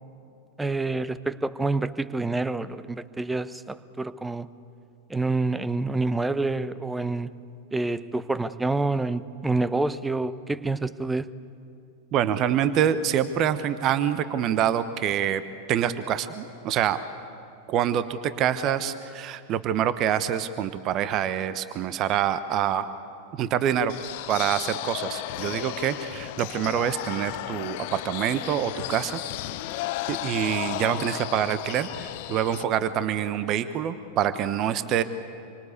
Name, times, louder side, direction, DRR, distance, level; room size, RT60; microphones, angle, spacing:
voice 1, 0.6-4.5 5.1-7.4 7.7-11.3, right 3 dB, 10° right, 16 dB, 0.9 m, -27 dB
voice 2, 12.1-15.4 15.7-17.0 17.7-22.9 23.4-23.9 24.3-29.2 30.1-35.0, right 9 dB, 35° right, 13 dB, 1.1 m, -26 dB
sound 1, 23.9-32.6, left 16 dB, 50° left, 0.7 m, -34 dB
27.0 x 24.5 x 8.3 m, 2.5 s
figure-of-eight pair, 90°, 0 cm